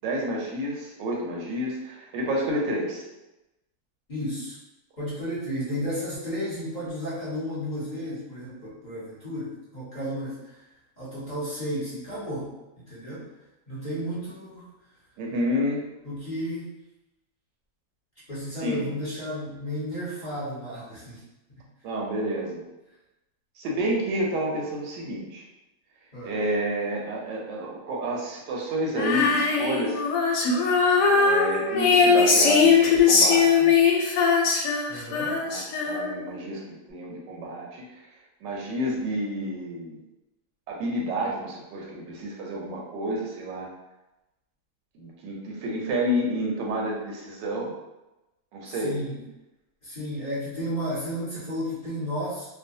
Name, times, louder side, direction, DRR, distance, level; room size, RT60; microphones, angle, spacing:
voice 1, 0.0-3.0 15.2-15.8 18.6-18.8 21.8-22.6 23.6-25.4 26.2-30.1 31.1-33.7 35.4-38.0 38.4-40.0 40.7-43.7 44.9-47.7 48.5-48.9, right 1 dB, 85° right, -2 dB, 1.3 m, -30 dB
voice 2, 4.1-4.6 5.0-10.6 11.0-12.5 12.8-13.3 13.7-14.7 16.0-16.7 18.3-21.2 26.1-26.3 34.9-35.4 48.7-49.2 49.8-52.5, equal, 45° left, -10 dB, 0.6 m, -33 dB
Female singing, 29.0-36.3, left 5 dB, 75° left, 1.1 m, -20 dB
3.1 x 2.0 x 2.6 m, 0.98 s
omnidirectional pair, 1.9 m